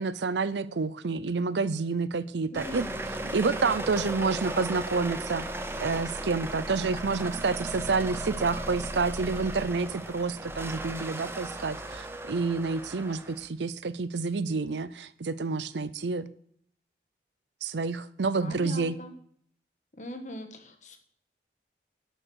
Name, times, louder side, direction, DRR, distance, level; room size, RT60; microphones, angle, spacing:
voice 1, 0.0-2.8 3.3-5.5 5.8-16.3 17.6-19.0, right 4 dB, 90° right, 0.6 m, -29 dB
voice 2, 2.5-3.0 18.4-19.1 20.0-21.0, left 1 dB, 45° left, 1.4 m, -41 dB
sound 1, 2.5-13.5, right 1 dB, 15° right, 0.8 m, -36 dB
11.5 x 6.4 x 6.3 m
head